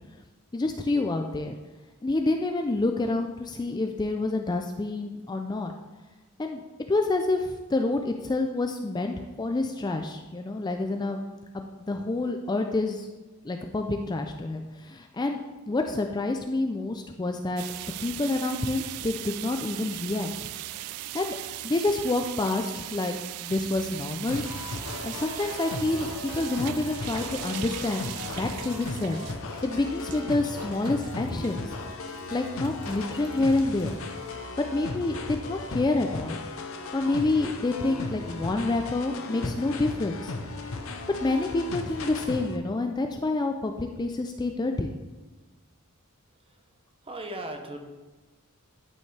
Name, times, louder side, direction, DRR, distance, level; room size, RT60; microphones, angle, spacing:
voice 1, 0.5-1.6 2.0-5.7 6.4-6.6 6.9-11.2 11.5-13.1 13.4-17.6 18.0-20.3 21.1-21.4 21.6-23.1 23.4-24.4 25.0-28.1 28.4-29.3 29.6-31.7 32.3-33.9 34.7-36.4 36.9-40.3 41.2-44.9, left 2 dB, 20° left, 4 dB, 0.4 m, -28 dB
sound 1, 17.6-34.4, right 15 dB, 85° right, 0.3 m, -40 dB
sound 2, 24.3-42.6, left 2 dB, 65° left, 0.7 m, -36 dB
voice 2, 47.0-47.8, right 1 dB, 25° right, 4 dB, 0.9 m, -37 dB
11.5 x 5.4 x 3.3 m, 1.2 s
head